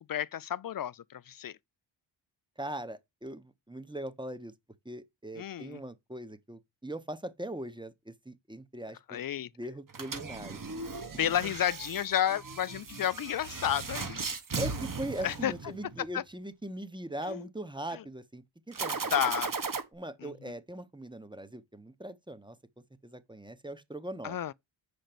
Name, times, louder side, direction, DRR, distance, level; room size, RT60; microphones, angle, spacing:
voice 1, 0.1-1.6 5.4-5.8 9.1-9.5 11.2-14.3 15.2-15.5 16.1-16.2 17.2-17.5 17.9-18.0 19.1-19.5 20.2-20.3 24.2-24.5, left 10 dB, 50° left, 0.4 m, -31 dB
voice 2, 2.6-4.5 4.8-9.2 9.6-10.6 11.2-11.5 14.6-19.1 19.9-22.6 23.0-24.5, right 1 dB, 10° right, 1.0 m, -40 dB
sound 1, 9.9-16.1 18.7-19.8, right 4 dB, 40° right, 1.5 m, -37 dB
6.4 x 5.2 x 6.0 m
cardioid pair, 70°, 48 cm